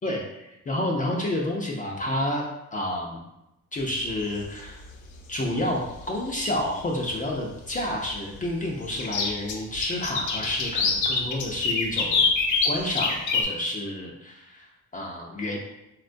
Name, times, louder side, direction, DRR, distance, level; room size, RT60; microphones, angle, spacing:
voice 1, 0.0-3.2 3.7-4.8 5.3-5.8 6.1-12.2 12.6-14.7 14.9-15.6, left 1 dB, 25° left, -2 dB, 0.5 m, -29 dB
sound 1, 4.1-4.4 6.0-6.1 6.5-6.6 8.9-13.4, left 5 dB, 75° left, 0.6 m, -24 dB
3.5 x 2.2 x 2.5 m, 0.89 s
cardioid pair, 90°, 30 cm